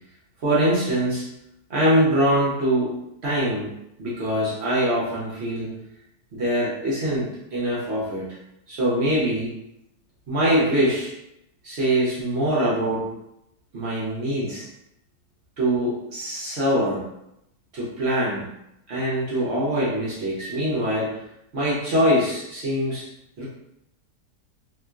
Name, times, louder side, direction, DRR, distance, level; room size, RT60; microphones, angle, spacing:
voice 1, 0.4-1.3 1.7-3.0 3.2-3.7 4.0-5.7 6.3-8.3 8.7-9.5 10.3-11.1 11.6-13.1 13.7-14.7 15.6-17.1 17.7-18.4 18.9-21.2 21.5-23.1 23.4-23.5, equal, 55° right, -6 dB, 0.8 m, -23 dB
2.9 x 2.7 x 2.3 m, 0.83 s
omnidirectional pair, 1.7 m